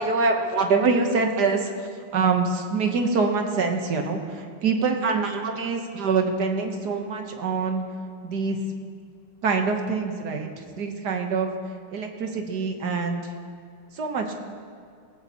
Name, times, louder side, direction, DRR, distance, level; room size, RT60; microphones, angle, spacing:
voice 1, 0.0-1.7 2.1-7.8 8.2-8.6 9.4-10.5 10.8-11.5 11.9-13.2 13.9-14.3, right 4 dB, 55° right, 4 dB, 1.4 m, -25 dB
19.0 x 14.5 x 2.9 m, 2.3 s
omnidirectional pair, 2.4 m